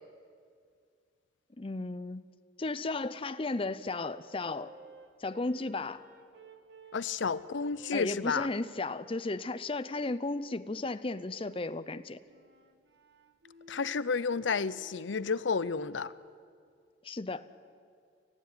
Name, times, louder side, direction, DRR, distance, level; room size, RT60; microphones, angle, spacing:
voice 1, 1.6-2.3 2.6-4.7 5.2-6.0 7.9-12.2 17.0-17.4, left 2 dB, 30° left, 12 dB, 0.6 m, -34 dB
sound 1, 4.0-8.2 8.8-9.4 11.0-11.7 12.3-16.2, right 2 dB, 65° right, 1.7 m, -56 dB
voice 2, 6.9-8.5 13.7-16.1, left 5 dB, 80° left, 17 dB, 0.6 m, -31 dB
28.5 x 14.5 x 9.7 m, 2.2 s
head